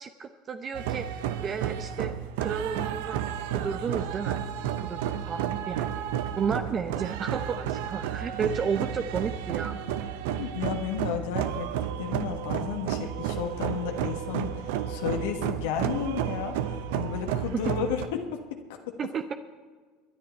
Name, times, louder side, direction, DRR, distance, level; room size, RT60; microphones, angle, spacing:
voice 1, 0.0-3.2 3.5-4.4 4.8-5.9 6.4-9.8 17.5-17.6 19.0-19.3, right 6 dB, 35° right, 9 dB, 0.7 m, -32 dB
sound 1, 0.7-18.1, right 9 dB, 75° right, 0.8 m, -32 dB
voice 2, 10.4-18.4 18.7-18.9, left 8 dB, 75° left, 3 dB, 1.3 m, -33 dB
21.5 x 10.0 x 4.4 m, 1.5 s
hypercardioid pair, 80°, 0 cm